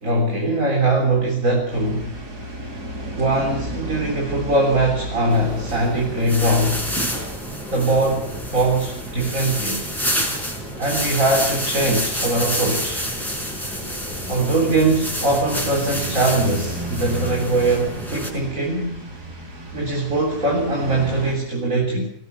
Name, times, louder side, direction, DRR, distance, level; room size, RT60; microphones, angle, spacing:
voice 1, 0.0-2.2 3.1-6.9 7.7-9.8 10.8-13.0 14.2-19.0 19.7-22.1, right 2 dB, 55° right, 0 dB, 4.1 m, -21 dB
sound 1, 1.7-21.3, right 2 dB, 75° right, 4.6 m, -35 dB
sound 2, 5.3-18.3, equal, ahead, 5.7 m, -28 dB
24.0 x 18.5 x 6.9 m, 0.71 s
omnidirectional pair, 1.7 m